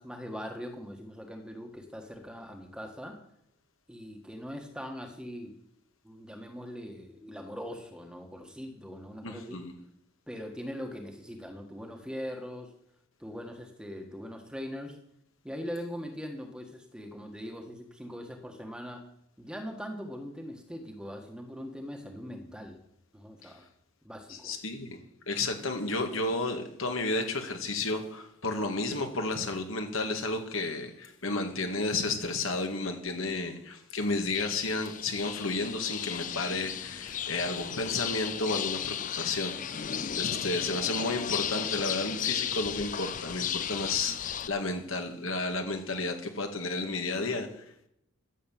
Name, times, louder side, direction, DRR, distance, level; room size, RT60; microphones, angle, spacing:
voice 1, 0.0-3.2 3.9-5.6 6.0-9.6 10.3-12.7 13.2-15.0 15.4-19.1 19.4-22.8 23.1-23.7 24.0-24.5 40.1-40.5, equal, 5° right, 1.6 m, -41 dB
voice 2, 9.2-9.7 23.4-23.5 24.3-25.0 25.3-47.6, left 2 dB, 70° left, 2.0 m, -32 dB
sound 1, 34.3-44.5, left 9 dB, 35° left, 0.5 m, -34 dB
13.0 x 7.7 x 7.6 m
head